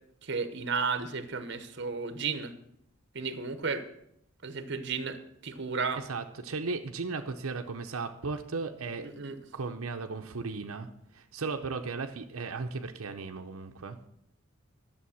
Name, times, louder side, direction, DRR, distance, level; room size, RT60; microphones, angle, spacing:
voice 1, 0.2-2.5 3.1-3.8 4.4-6.0 9.0-9.4, right 5 dB, 55° right, 10 dB, 1.0 m, -33 dB
voice 2, 6.0-9.1 9.5-10.9 11.1-14.0, right 4 dB, 85° right, 5 dB, 0.7 m, -36 dB
11.5 x 7.0 x 7.1 m, 0.76 s
head